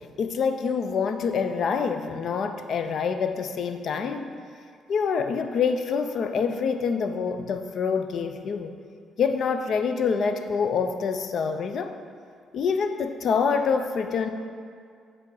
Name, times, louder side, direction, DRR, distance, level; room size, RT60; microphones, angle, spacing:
voice 1, 0.0-4.3 4.9-8.7 9.2-11.9 12.5-14.3, left 6 dB, 60° left, 7 dB, 0.4 m, -26 dB
6.8 x 3.7 x 4.8 m, 2.2 s
cardioid pair, 90°, 0 cm